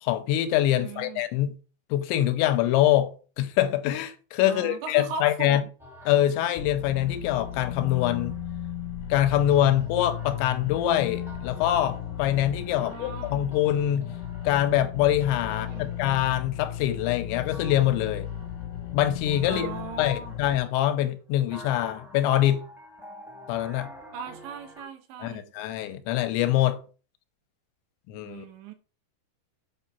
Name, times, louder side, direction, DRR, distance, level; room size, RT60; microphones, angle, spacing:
voice 1, 0.0-1.5 1.9-5.6 6.1-8.3 9.1-14.1 14.4-18.3 18.9-19.7 20.0-22.6 23.5-23.9 25.2-26.8 28.1-28.5, left 12 dB, 85° left, 2.9 m, -24 dB
voice 2, 0.8-1.2 4.4-5.7 12.8-13.4 15.5-15.9 19.4-20.4 24.1-25.5 28.2-28.7, right 5 dB, 80° right, 3.4 m, -38 dB
sound 1, 5.8-8.9 9.5-13.0 13.5-17.0 17.5-21.0 21.5-24.8, equal, ahead, 2.8 m, -49 dB
sound 2, 6.6-20.6, left 10 dB, 65° left, 2.9 m, -35 dB
7.8 x 4.0 x 5.8 m
omnidirectional pair, 5.3 m